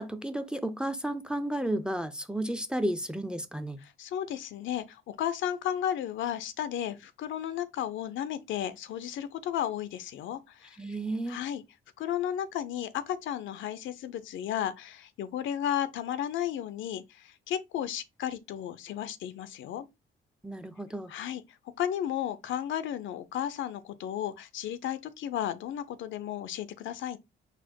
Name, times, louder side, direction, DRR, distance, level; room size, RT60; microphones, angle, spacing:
voice 1, 0.0-3.8 10.8-11.4 20.4-21.1, right 1 dB, 5° right, 0.5 m, -32 dB
voice 2, 4.0-10.8 11.3-11.6 12.0-19.9 21.1-21.4 21.8-27.2, left 10 dB, 75° left, 0.5 m, -33 dB
4.2 x 2.1 x 4.6 m
cardioid pair, 90°, 20 cm